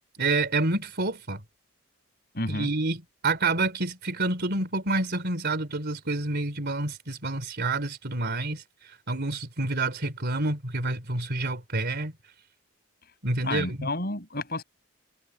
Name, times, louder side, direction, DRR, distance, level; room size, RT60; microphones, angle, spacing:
voice 1, 0.2-1.4 2.5-8.6 9.1-12.1 13.2-13.9, right 2 dB, 50° right, 3.9 m, -28 dB
voice 2, 2.3-2.7 13.4-14.6, left 2 dB, 50° left, 7.4 m, -30 dB
head